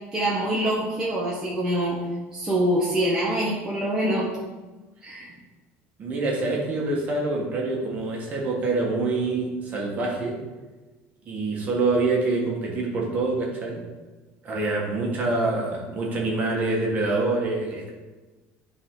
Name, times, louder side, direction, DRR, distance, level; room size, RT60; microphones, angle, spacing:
voice 1, 0.1-2.0 2.3-4.3 5.0-5.3, right 1 dB, 10° right, -6 dB, 1.2 m, -25 dB
voice 2, 6.0-10.4 11.3-13.8 14.4-17.9, right 3 dB, 35° right, -2 dB, 1.8 m, -26 dB
11.0 x 4.0 x 3.9 m, 1.2 s
cardioid pair, 160°, 5 cm